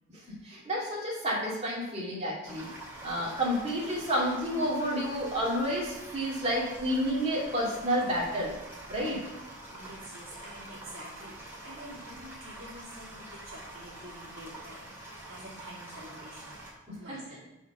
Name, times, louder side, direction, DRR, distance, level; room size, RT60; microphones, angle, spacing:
voice 1, 0.1-2.7 3.0-8.5 8.9-9.2 16.9-17.2, equal, 30° right, -4 dB, 2.5 m, -30 dB
sound 1, 2.5-16.7, right 1 dB, 10° right, 2.2 m, -46 dB
voice 2, 9.7-16.6 16.9-17.4, equal, 60° right, -10 dB, 2.5 m, -48 dB
8.1 x 4.6 x 5.5 m, 1.1 s
head